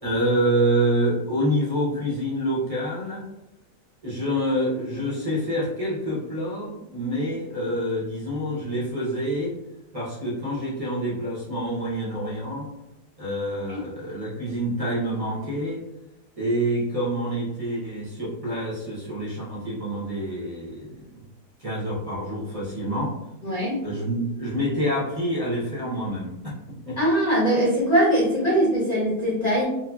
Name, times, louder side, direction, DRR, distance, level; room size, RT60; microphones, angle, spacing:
voice 1, 0.0-3.3 4.0-9.5 9.9-12.7 13.2-15.8 16.4-21.2 21.6-23.1 23.8-26.4 26.7-27.0, right 1 dB, 45° right, -7 dB, 0.4 m, -27 dB
voice 2, 23.4-23.8 27.0-29.6, equal, 55° left, -8 dB, 0.4 m, -21 dB
2.9 x 2.5 x 2.2 m, 0.90 s
omnidirectional pair, 1.8 m